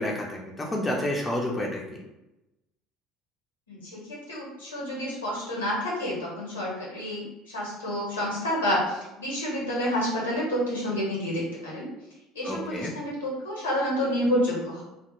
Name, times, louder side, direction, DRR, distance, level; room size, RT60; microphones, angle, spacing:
voice 1, 0.0-2.0 12.4-12.9, left 1 dB, 20° left, -1 dB, 0.5 m, -29 dB
voice 2, 3.7-11.9 12.3-14.8, equal, 85° left, -5 dB, 0.9 m, -29 dB
2.2 x 2.1 x 3.0 m, 0.95 s
figure-of-eight pair, 65°, 0 cm